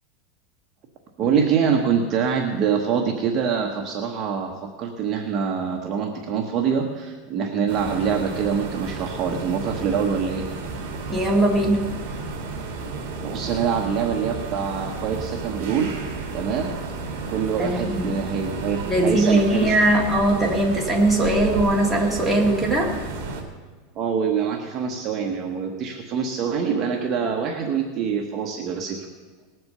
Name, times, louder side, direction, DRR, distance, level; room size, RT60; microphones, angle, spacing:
voice 1, 1.2-10.4 13.2-15.9 16.3-16.7 17.3-19.8 24.0-29.1, right 6 dB, 30° right, 1 dB, 1.1 m, -25 dB
sound 1, 7.7-23.4, right 3 dB, 50° right, 2.4 m, -32 dB
voice 2, 11.1-11.9 17.6-18.3 18.9-23.0, right 1 dB, ahead, -3 dB, 1.8 m, -20 dB
19.0 x 7.9 x 6.7 m, 1.4 s
supercardioid pair, 170°, 0 cm